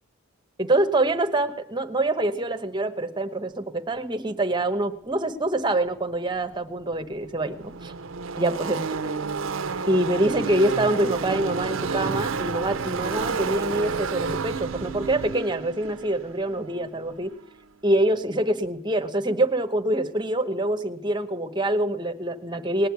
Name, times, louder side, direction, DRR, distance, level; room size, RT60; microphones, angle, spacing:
voice 1, 0.6-7.9 8.4-8.8 9.9-17.3 17.8-22.9, right 1 dB, 20° right, 7 dB, 1.0 m, -25 dB
Car passing by / Race car auto racing, 6.5-6.6 6.8-17.4, right 4 dB, 65° right, 0.6 m, -30 dB
19.0 x 6.5 x 9.5 m, 0.72 s
head